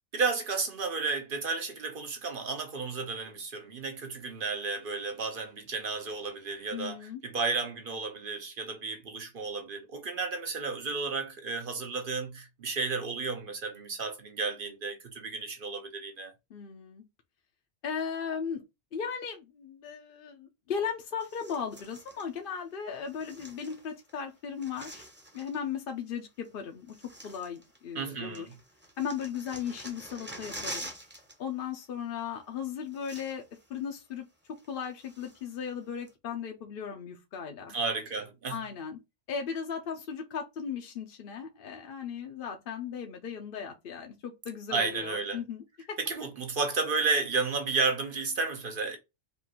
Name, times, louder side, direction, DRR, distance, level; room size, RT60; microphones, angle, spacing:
voice 1, 0.1-16.3 27.9-28.5 37.7-38.6 44.7-45.4 46.0-49.0, right 4 dB, 50° right, 0.8 m, -32 dB
voice 2, 6.7-7.2 16.5-17.0 17.8-18.6 18.9-25.1 25.3-26.9 27.2-28.5 29.0-30.9 31.4-33.4 33.7-37.7 38.5-39.0 39.3-46.0, left 7 dB, 55° left, 0.7 m, -37 dB
sound 1, 21.2-22.3 23.0-24.1 24.4-25.6 26.4-26.5 26.9-28.1 28.3-31.4 31.6-31.8 32.6-32.7 32.9-33.6 34.0-34.1 34.6-35.5 36.1-36.2, right 1 dB, 10° right, 0.7 m, -45 dB
5.3 x 2.5 x 2.9 m
omnidirectional pair, 1.3 m